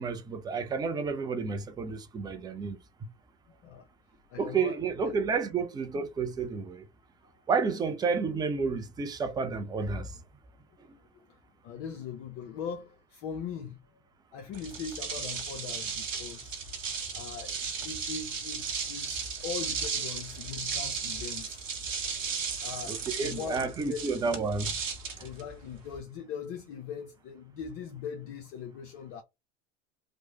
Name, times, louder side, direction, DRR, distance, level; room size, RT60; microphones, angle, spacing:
voice 1, 0.0-2.8 4.4-6.9 7.5-10.2 22.9-24.7, right 5 dB, 10° right, 0.4 m, -30 dB
voice 2, 3.5-3.9 4.3-5.2 11.3-11.4 11.6-13.8 14.3-16.6 17.1-17.6 17.8-21.7 22.6-24.0 25.2-29.2, left 6 dB, 35° left, 0.6 m, -40 dB
sound 1, 14.5-26.0, right 5 dB, 85° right, 0.8 m, -35 dB
3.1 x 2.0 x 2.8 m
figure-of-eight pair, 85°, 37 cm